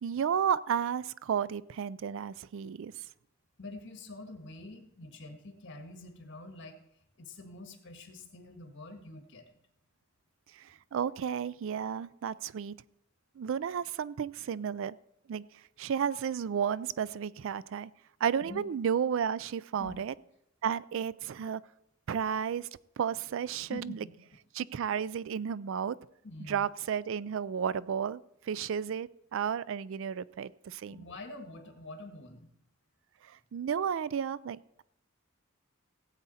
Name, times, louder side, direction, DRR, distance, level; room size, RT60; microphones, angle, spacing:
voice 1, 0.0-3.1 10.5-12.8 13.4-15.0 15.3-15.4 15.8-17.9 18.2-20.1 20.6-21.6 22.1-22.7 23.0-24.0 24.6-26.0 26.5-31.1 33.2-34.8, right 7 dB, 65° right, 20 dB, 0.4 m, -32 dB
voice 2, 3.6-6.8 7.2-9.4 18.4-18.6 19.7-20.0 23.6-24.1 26.2-26.7 30.7-32.5, left 2 dB, 60° left, 6 dB, 1.6 m, -46 dB
16.5 x 8.2 x 4.2 m, 0.77 s
head